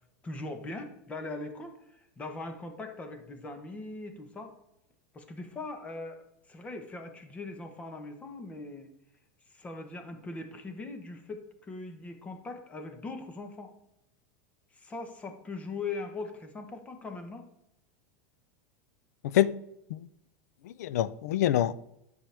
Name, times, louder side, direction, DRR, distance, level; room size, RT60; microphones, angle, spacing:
voice 1, 0.2-4.5 5.1-6.2 6.5-8.9 9.5-13.7 14.7-17.5, left 3 dB, 15° left, 1.0 m, -40 dB
voice 2, 19.2-19.6 19.9-20.1 20.6-21.7, left 12 dB, 85° left, 0.4 m, -26 dB
10.0 x 6.5 x 3.4 m
supercardioid pair, 155°, 8 cm